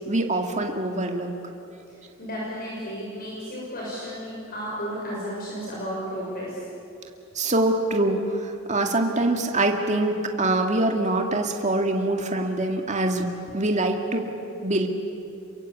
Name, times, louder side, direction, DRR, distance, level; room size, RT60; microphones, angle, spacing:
voice 1, 0.1-1.3 7.3-14.3 14.6-14.9, right 2 dB, 35° right, 3 dB, 2.1 m, -24 dB
voice 2, 2.0-6.6, equal, 45° left, -5 dB, 6.3 m, -33 dB
28.5 x 23.0 x 8.5 m, 2.6 s
head